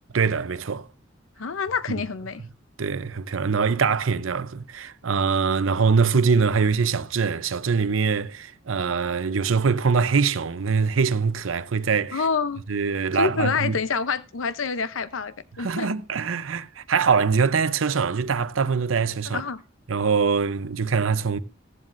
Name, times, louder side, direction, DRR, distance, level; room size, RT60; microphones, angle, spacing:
voice 1, 0.1-0.9 2.8-12.2 12.7-13.7 15.6-19.4 19.9-21.4, right 5 dB, 90° right, 0.6 m, -23 dB
voice 2, 1.4-2.4 12.1-12.6 13.1-15.9 19.3-19.6, left 5 dB, 90° left, 0.7 m, -27 dB
14.5 x 14.0 x 2.6 m
head